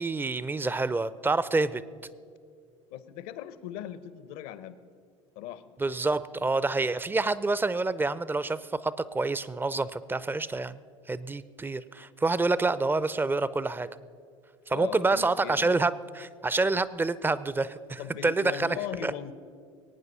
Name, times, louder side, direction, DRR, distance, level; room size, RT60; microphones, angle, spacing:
voice 1, 0.0-1.8 5.8-10.8 11.1-13.9 14.7-18.8 19.0-19.3, right 3 dB, 15° right, 16 dB, 0.6 m, -27 dB
voice 2, 2.9-4.8 5.4-5.7 14.7-15.8 18.0-19.3, left 10 dB, 60° left, 14 dB, 0.9 m, -39 dB
22.5 x 9.3 x 5.6 m, 2.3 s
hypercardioid pair, 75°, 16 cm